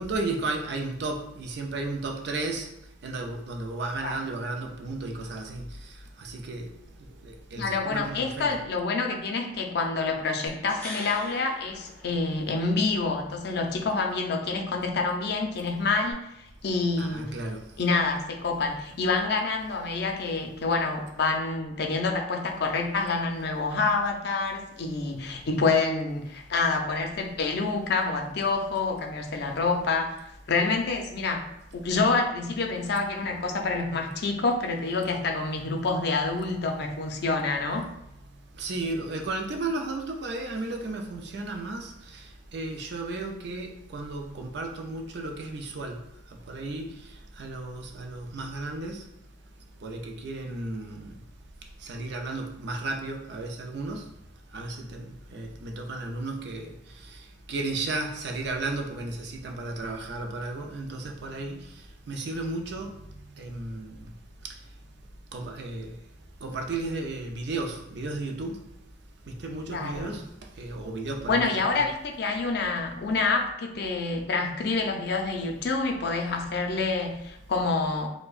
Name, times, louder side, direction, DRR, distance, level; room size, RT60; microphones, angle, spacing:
voice 1, 0.0-2.7 3.0-5.6 6.2-6.7 7.2-8.6 17.0-17.6 38.6-42.2 42.5-46.0 46.5-47.1 47.4-49.1 49.8-51.2 51.8-54.1 54.5-56.8 57.0-57.2 57.5-61.7 62.1-62.9 63.4-64.0 65.3-65.9 66.4-68.7 69.3-70.3 70.6-71.9, right 2 dB, 60° right, 0.5 m, -34 dB
voice 2, 7.6-16.3 16.6-17.3 17.8-31.4 31.7-37.9 69.7-70.2 71.3-78.1, left 3 dB, 60° left, 0.5 m, -27 dB
sound 1, 10.5-12.7 16.1-16.2, left 1 dB, 10° left, 0.9 m, -42 dB
4.6 x 2.1 x 2.4 m
head